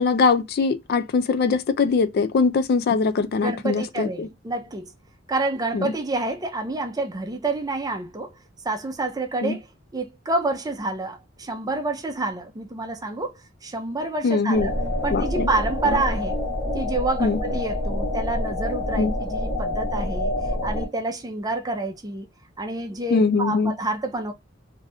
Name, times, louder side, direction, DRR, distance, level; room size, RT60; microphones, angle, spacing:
voice 1, 0.0-4.3 5.7-5.9 9.4-9.6 14.2-14.7 15.1-15.5 15.8-16.0 17.2-17.4 19.0-19.1 23.1-23.7, left 4 dB, 50° left, 0.3 m, -22 dB
voice 2, 3.4-4.9 5.3-8.3 8.6-9.7 9.9-13.3 13.6-14.7 15.0-16.4 16.7-22.3 22.6-24.3, right 2 dB, 20° right, 0.5 m, -28 dB
sound 1, 14.5-20.9, left 1 dB, 10° left, 1.1 m, -27 dB
2.6 x 2.4 x 3.3 m
head